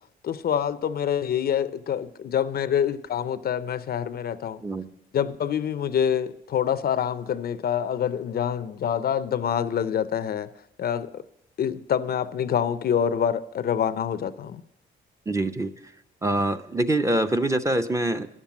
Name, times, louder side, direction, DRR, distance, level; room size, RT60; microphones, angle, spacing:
voice 1, 0.2-4.6 5.1-10.5 10.8-11.2 11.6-14.6, left 8 dB, 50° left, 14 dB, 0.5 m, -26 dB
voice 2, 15.3-15.7 16.2-18.3, right 1 dB, 15° right, 8 dB, 0.6 m, -24 dB
9.9 x 7.4 x 7.2 m, 0.80 s
cardioid pair, 90°, 20 cm